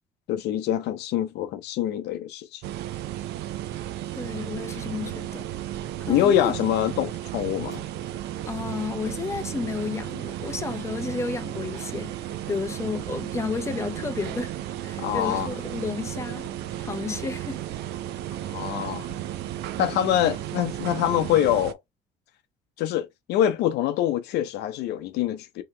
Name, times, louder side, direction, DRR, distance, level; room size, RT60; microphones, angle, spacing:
voice 1, 0.3-2.6 6.1-7.8 15.0-15.5 18.5-19.1 19.8-21.8 22.8-25.6, left 11 dB, 80° left, 0.7 m, -25 dB
sound 1, 2.6-21.7, right 13 dB, 80° right, 0.4 m, -34 dB
voice 2, 4.1-5.5 6.1-6.5 8.5-12.1 12.5-14.5 14.8-16.5 16.8-17.6, left 4 dB, 15° left, 0.5 m, -32 dB
sound 2, 7.7-21.5, right 1 dB, 20° right, 1.2 m, -49 dB
2.9 x 2.8 x 3.2 m
cardioid pair, 110°, 17 cm